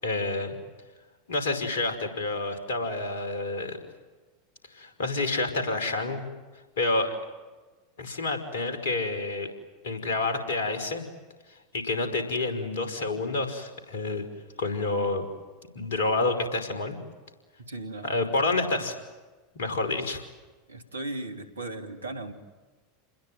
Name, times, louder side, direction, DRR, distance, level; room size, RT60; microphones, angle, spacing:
voice 1, 0.0-0.6 1.3-3.8 4.8-6.3 6.8-7.2 8.0-9.5 9.8-11.1 11.7-14.3 14.6-15.3 15.8-17.0 18.0-18.9 19.6-20.2, left 2 dB, 65° left, 7 dB, 5.2 m, -28 dB
voice 2, 17.6-18.2 20.7-22.3, right 2 dB, 80° right, 7 dB, 3.0 m, -37 dB
28.5 x 21.5 x 9.3 m, 1.2 s
figure-of-eight pair, 85°, 0 cm